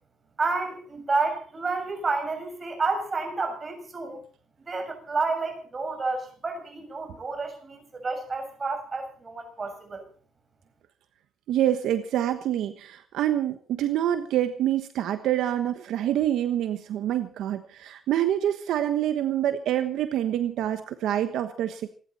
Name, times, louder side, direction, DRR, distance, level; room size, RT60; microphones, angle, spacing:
voice 1, 0.4-4.2 4.7-10.0, right 3 dB, 35° right, 5 dB, 6.7 m, -30 dB
voice 2, 11.5-21.9, right 11 dB, 80° right, 9 dB, 1.2 m, -26 dB
28.0 x 11.5 x 4.2 m, 0.41 s
cardioid pair, 90°, 0 cm